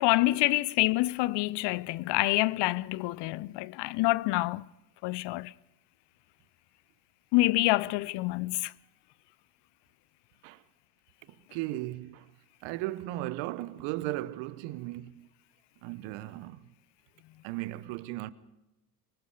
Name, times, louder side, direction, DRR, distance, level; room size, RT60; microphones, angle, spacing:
voice 1, 0.0-4.6 5.0-5.5 7.3-8.7, left 19 dB, 60° left, 0.7 m, -27 dB
voice 2, 11.3-12.3 12.6-15.3 15.8-16.7 17.4-18.3, right 16 dB, 70° right, 1.1 m, -36 dB
24.5 x 23.5 x 4.9 m
hypercardioid pair, 50°, 47 cm